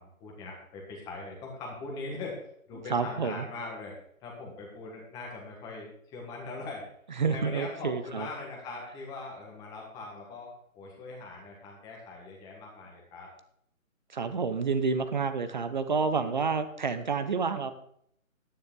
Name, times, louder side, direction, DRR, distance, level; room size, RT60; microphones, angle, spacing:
voice 1, 0.0-2.4 2.7-6.9 7.2-13.3, left 3 dB, 10° left, -1 dB, 1.4 m, -41 dB
voice 2, 2.9-3.5 7.2-8.3 14.1-17.7, right 5 dB, 35° right, 11 dB, 0.7 m, -29 dB
10.0 x 9.7 x 3.7 m, 0.69 s
figure-of-eight pair, 155°, 42 cm